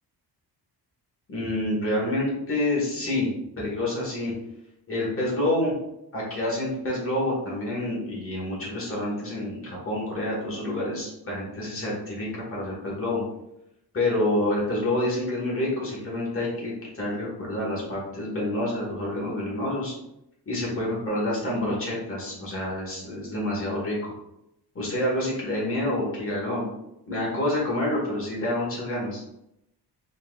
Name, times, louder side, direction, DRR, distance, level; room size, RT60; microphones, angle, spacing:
voice 1, 1.3-3.3 3.6-4.3 4.9-5.7 6.1-13.2 13.9-19.9 20.5-24.1 24.7-26.7 27.1-29.2, left 1 dB, 35° left, -4 dB, 1.5 m, -28 dB
4.3 x 3.8 x 2.3 m, 0.83 s
wide cardioid pair, 180°, 40 cm